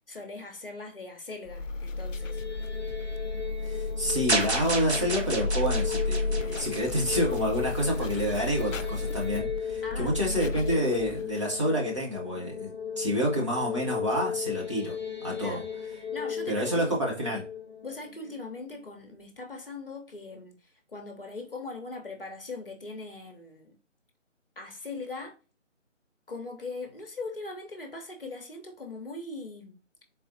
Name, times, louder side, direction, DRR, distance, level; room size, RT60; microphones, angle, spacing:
voice 1, 0.1-2.4 9.8-10.5 15.3-15.6 16.1-17.4 17.8-20.6 20.9-23.8 24.6-25.3 26.3-29.8, left 3 dB, 45° left, 0.9 m, -40 dB
sound 1, 1.4-11.4, left 3 dB, 85° left, 0.5 m, -33 dB
sound 2, 2.0-19.1, left 7 dB, 15° left, 1.0 m, -37 dB
voice 2, 3.6-15.0 15.2-15.6 16.5-17.4, equal, 25° right, 1.0 m, -28 dB
sound 3, 4.3-7.6, right 2 dB, 60° right, 1.3 m, -31 dB
4.0 x 4.0 x 2.7 m
figure-of-eight pair, 155°, 38 cm